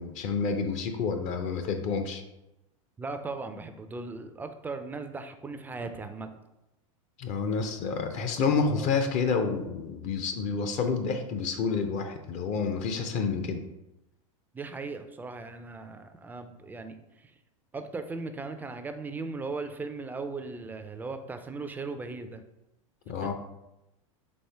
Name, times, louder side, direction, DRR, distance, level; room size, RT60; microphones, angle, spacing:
voice 1, 0.0-2.2 7.2-13.6 23.1-23.3, left 5 dB, 45° left, 6 dB, 0.5 m, -29 dB
voice 2, 3.0-6.3 8.8-8.9 14.5-17.3 17.7-22.4 23.2-23.3, right 3 dB, 10° right, 8 dB, 0.3 m, -38 dB
4.3 x 3.1 x 3.3 m, 0.92 s
hypercardioid pair, 110°, 18 cm